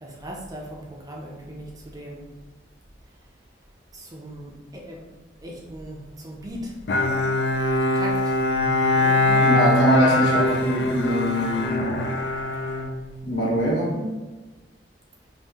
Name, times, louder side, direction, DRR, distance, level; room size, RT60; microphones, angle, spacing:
voice 1, 0.0-2.3 3.9-5.1 5.4-6.7 8.0-8.3 8.9-9.5, equal, 20° right, -2 dB, 0.5 m, -38 dB
Bowed string instrument, 6.9-13.6, left 2 dB, 70° left, 0.4 m, -22 dB
voice 2, 9.4-11.8 13.2-14.1, equal, 90° left, -6 dB, 1.3 m, -23 dB
2.8 x 2.5 x 3.4 m, 1.2 s
head